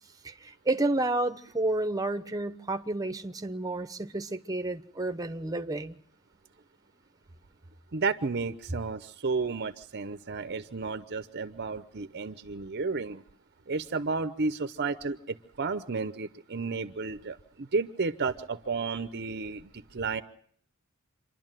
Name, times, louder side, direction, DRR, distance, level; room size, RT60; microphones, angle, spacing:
voice 1, 0.2-6.0, right 2 dB, 15° right, 1.0 m, -30 dB
voice 2, 7.9-13.2 13.7-20.2, right 4 dB, 50° right, 0.8 m, -32 dB
27.0 x 11.5 x 9.0 m
head